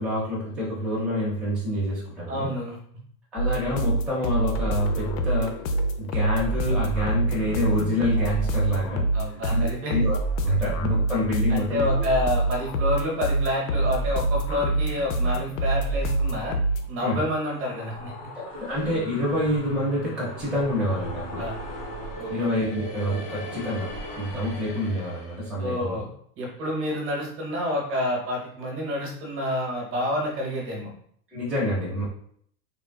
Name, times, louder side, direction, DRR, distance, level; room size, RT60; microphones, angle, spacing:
voice 1, 0.0-2.5 3.3-5.6 6.0-9.1 9.5-10.2 10.4-12.1 17.0-17.2 18.3-21.5 22.3-26.0 31.3-32.0, left 1 dB, 5° right, -7 dB, 0.6 m, -27 dB
voice 2, 2.3-2.8 9.1-10.0 11.5-16.6 16.9-18.1 21.3-21.5 22.2-22.5 25.6-26.1 26.4-30.9, left 1 dB, 30° right, -1 dB, 0.8 m, -28 dB
sound 1, 3.4-16.9, right 2 dB, 55° left, 0.6 m, -25 dB
sound 2, 17.3-25.5, right 1 dB, 15° left, 1.2 m, -38 dB
3.6 x 2.3 x 2.2 m, 0.63 s
supercardioid pair, 140°, 47 cm